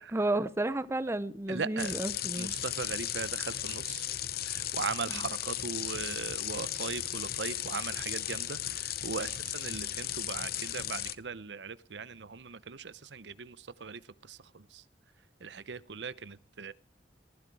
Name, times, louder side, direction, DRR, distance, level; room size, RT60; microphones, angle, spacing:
voice 1, 0.0-2.5 5.1-5.2, right 2 dB, 15° right, 0.7 m, -32 dB
voice 2, 1.5-2.0 2.3-4.1 4.4-14.0 14.3-14.8 15.4-16.7, right 5 dB, 80° right, 0.8 m, -39 dB
sound 1, 1.8-11.1, left 12 dB, 60° left, 0.8 m, -36 dB
19.5 x 15.0 x 4.8 m
head